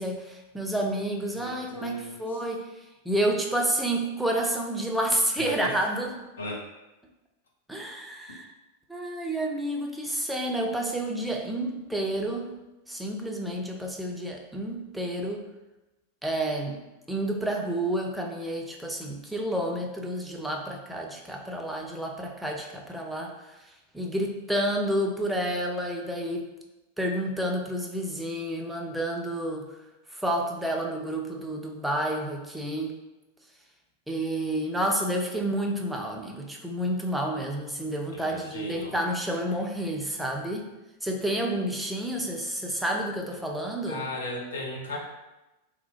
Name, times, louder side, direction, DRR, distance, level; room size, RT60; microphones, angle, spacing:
voice 1, 0.0-2.7 3.1-6.1 7.7-8.5 8.9-12.5 12.9-15.5 16.2-16.8 17.1-23.3 23.9-26.5 27.0-29.7 30.1-33.0 34.1-40.7 41.0-44.1, right 1 dB, 5° right, 0 dB, 0.4 m, -30 dB
voice 2, 1.4-2.4 5.4-5.7 6.4-6.6 38.1-38.9 43.9-45.0, left 2 dB, 65° left, -1 dB, 0.5 m, -36 dB
2.8 x 2.1 x 2.7 m, 1.0 s
figure-of-eight pair, 90°, 0 cm